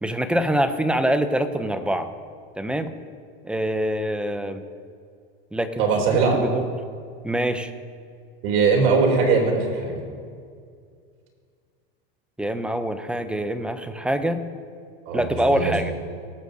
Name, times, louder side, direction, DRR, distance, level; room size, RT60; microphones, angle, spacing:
voice 1, 0.0-2.1 2.6-2.9 3.4-4.6 5.5-6.7 7.2-7.7 12.4-14.4 15.1-15.9, right 1 dB, 5° right, 9 dB, 0.5 m, -25 dB
voice 2, 5.8-6.4 8.4-10.0 15.0-15.7, right 4 dB, 60° right, 0 dB, 3.1 m, -20 dB
21.0 x 7.9 x 2.7 m, 2.2 s
supercardioid pair, 125°, 30 cm